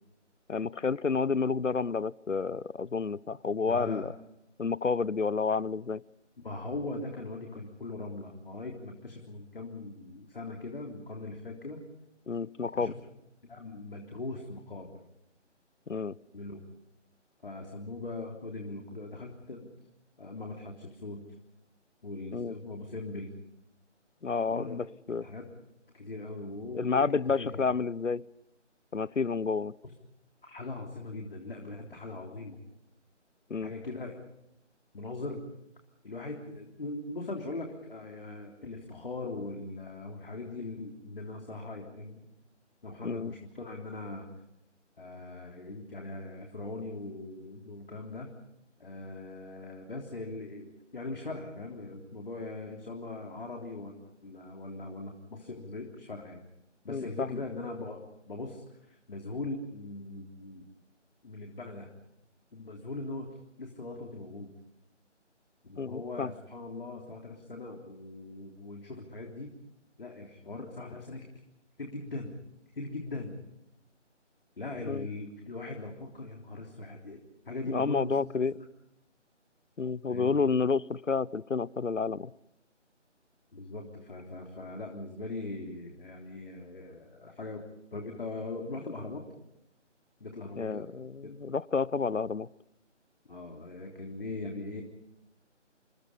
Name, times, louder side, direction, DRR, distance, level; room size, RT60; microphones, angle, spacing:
voice 1, 0.5-4.1 4.6-6.0 12.3-12.9 15.9-16.2 22.3-22.5 24.2-25.3 26.7-28.2 28.9-29.7 33.5-33.7 43.0-43.3 56.9-57.4 65.8-66.3 74.9-75.1 77.7-78.5 79.8-82.3 90.6-92.5, left 5 dB, 85° left, 25 dB, 0.8 m, -30 dB
voice 2, 3.6-4.1 6.4-11.8 12.7-12.9 13.5-15.0 16.3-16.6 17.4-19.7 20.2-21.2 22.0-23.3 24.5-24.7 25.2-25.5 25.9-27.6 29.8-29.9 30.4-32.6 33.6-34.2 34.9-35.4 36.0-42.2 42.8-44.3 45.0-48.3 48.8-53.9 54.2-56.4 56.8-58.6 58.9-60.7 61.2-61.9 62.5-64.5 65.6-69.5 70.0-71.3 71.8-72.3 72.7-73.4 74.6-77.2 77.5-78.2 78.5-78.7 80.1-80.4 83.5-87.6 87.9-89.3 90.2-90.9 91.2-91.4 93.3-94.8, left 2 dB, 50° left, 1 dB, 3.5 m, -40 dB
28.0 x 24.0 x 5.5 m, 0.84 s
figure-of-eight pair, 155°, 37 cm